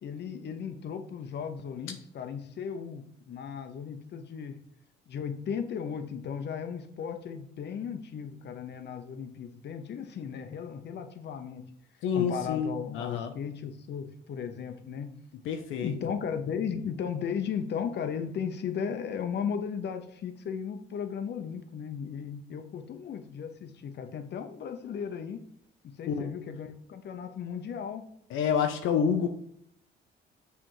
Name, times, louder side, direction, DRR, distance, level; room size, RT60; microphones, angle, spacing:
voice 1, 0.0-4.6 5.1-11.6 12.1-15.2 15.8-25.4 25.8-28.1, left 7 dB, 60° left, 7 dB, 0.9 m, -36 dB
voice 2, 12.0-13.3 15.5-15.9 26.1-26.3 28.3-29.3, left 7 dB, 90° left, 5 dB, 0.7 m, -28 dB
6.4 x 3.5 x 4.6 m, 0.69 s
cardioid pair, 90°, 20 cm